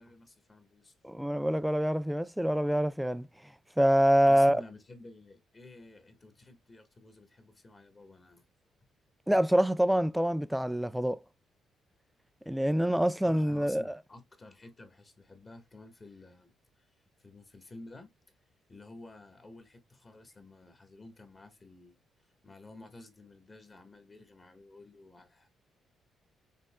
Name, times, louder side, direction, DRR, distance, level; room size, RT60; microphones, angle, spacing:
voice 1, 0.0-0.9 4.3-8.4 13.2-16.9 17.2-18.1 18.7-25.5, left 2 dB, 30° left, 1.3 m, -52 dB
voice 2, 1.0-3.3 3.8-4.6 9.3-11.2 12.5-13.8, equal, 5° right, 0.4 m, -25 dB
5.4 x 3.5 x 2.2 m
cardioid pair, 90°, 0 cm